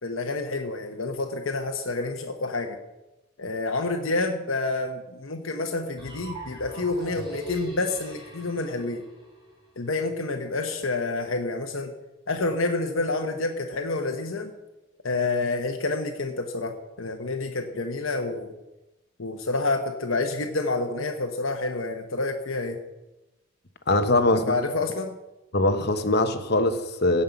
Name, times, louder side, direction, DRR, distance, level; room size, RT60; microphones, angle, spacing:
voice 1, 0.0-2.8 3.4-9.0 9.8-11.9 12.3-14.5 15.0-18.5 19.2-22.8 24.3-25.1, left 3 dB, 75° left, 4 dB, 1.1 m, -28 dB
sound 1, 6.0-9.9, right 1 dB, 25° right, 3.7 m, -40 dB
voice 2, 23.9-24.5 25.5-27.2, left 2 dB, 50° left, 9 dB, 1.1 m, -22 dB
16.5 x 5.6 x 8.1 m, 1.0 s
head